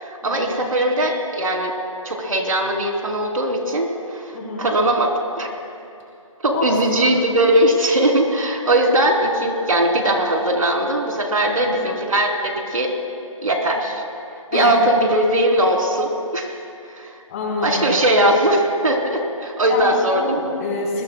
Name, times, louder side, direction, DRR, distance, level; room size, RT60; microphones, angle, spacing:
voice 1, 0.0-1.7 2.0-4.2 4.6-5.5 6.4-12.9 13.4-14.0 14.5-16.5 16.9-17.1 17.6-20.4, right 1 dB, 75° right, 2 dB, 3.3 m, -19 dB
voice 2, 4.3-4.7 6.5-6.7 6.9-7.1 11.5-11.8 14.5-14.7 17.3-17.8 19.7-21.0, left 2 dB, 25° left, -4 dB, 4.0 m, -27 dB
28.5 x 21.0 x 2.3 m, 2.6 s
figure-of-eight pair, 160°, 18 cm